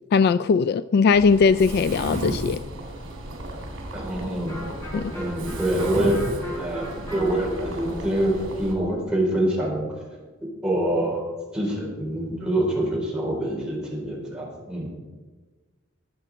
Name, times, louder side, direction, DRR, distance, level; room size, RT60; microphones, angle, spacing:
voice 1, 0.1-2.6 4.9-5.1, left 5 dB, 50° left, 0.3 m, -19 dB
Mechanisms, 1.1-8.7, right 1 dB, 75° right, 3.8 m, -34 dB
voice 2, 3.9-4.6 4.9-6.2 6.6-9.9 10.6-11.2 11.5-14.9, right 1 dB, 5° right, 4.5 m, -25 dB
Electric guitar, 4.5-10.1, equal, 15° left, 4.2 m, -38 dB
21.0 x 7.8 x 5.0 m
head